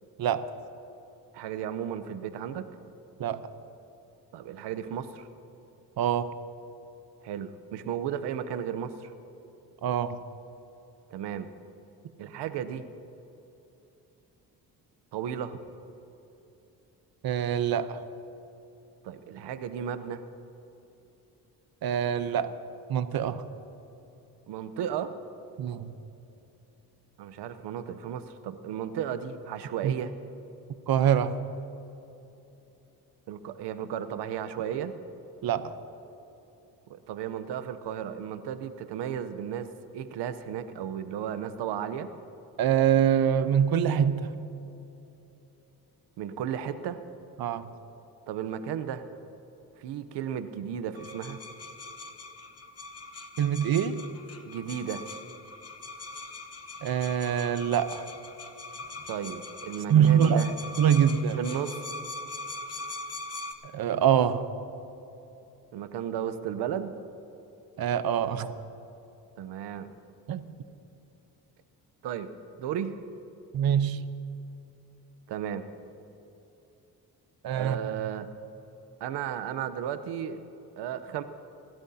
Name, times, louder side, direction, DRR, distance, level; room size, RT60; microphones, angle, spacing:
voice 1, 1.3-2.7 4.3-5.3 7.2-9.1 11.1-11.5 12.2-12.9 15.1-15.6 19.0-20.2 24.5-25.1 27.2-30.1 33.3-34.9 36.9-42.1 46.2-47.0 48.3-49.0 49.8-51.4 54.4-55.0 59.1-60.5 61.3-61.8 65.7-66.9 69.4-69.9 72.0-72.3 72.6-73.0 75.3-75.6 77.5-78.3 79.0-80.4 80.8-81.2, right 9 dB, 85° right, 11 dB, 0.8 m, -34 dB
voice 2, 6.0-6.3 9.8-10.2 17.2-18.0 21.8-22.5 22.9-23.4 25.6-25.9 29.8-29.9 30.9-31.4 35.4-35.7 42.6-44.3 47.4-47.7 53.4-54.0 56.8-58.0 59.9-60.5 60.8-61.4 63.7-64.5 67.8-68.6 70.3-70.5 73.5-74.0 77.4-78.0, right 9 dB, 60° right, 12 dB, 0.9 m, -24 dB
sound 1, 50.9-63.5, left 2 dB, 35° left, 1.2 m, -42 dB
26.0 x 12.5 x 2.8 m, 3.0 s
cardioid pair, 70°, 40 cm